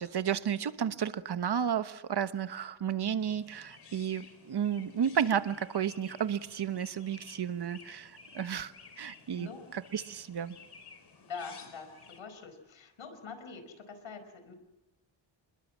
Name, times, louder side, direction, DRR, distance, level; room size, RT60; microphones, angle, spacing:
voice 1, 0.0-8.7 9.0-10.6, right 8 dB, 55° right, 12 dB, 1.2 m, -32 dB
Chirp tweet, 3.2-12.2, left 5 dB, 55° left, 4.6 m, -54 dB
voice 2, 9.3-9.7 11.2-14.5, left 5 dB, 80° left, 9 dB, 4.9 m, -44 dB
28.0 x 21.5 x 7.4 m, 0.99 s
wide cardioid pair, 110°, 47 cm